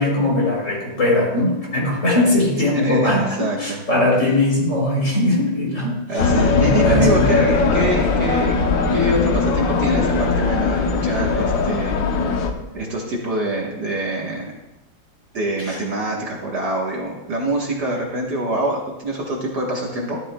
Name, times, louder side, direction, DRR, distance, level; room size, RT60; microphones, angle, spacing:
voice 1, 0.0-6.0 6.4-7.3 15.6-15.8, left 1 dB, 35° left, -3 dB, 3.8 m, -20 dB
voice 2, 2.7-3.8 6.1-8.6 8.9-12.4 12.7-14.5 15.3-20.2, right 1 dB, 55° right, -2 dB, 1.8 m, -25 dB
sound 1, 6.2-12.5, left 4 dB, 65° left, 1.5 m, -19 dB
13.0 x 12.5 x 2.2 m, 0.96 s
omnidirectional pair, 2.3 m